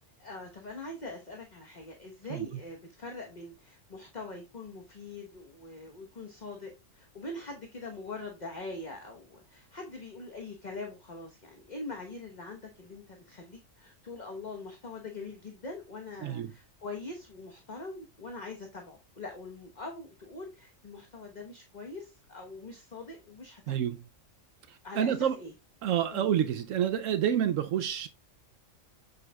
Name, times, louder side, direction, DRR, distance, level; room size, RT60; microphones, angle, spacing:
voice 1, 0.2-23.7 24.8-25.5 26.1-26.3, left 2 dB, 35° left, 1.3 m, -43 dB
voice 2, 23.7-24.0 24.7-25.4 25.8-28.1, right 9 dB, 75° right, 0.9 m, -28 dB
8.4 x 6.5 x 2.3 m
omnidirectional pair, 1.4 m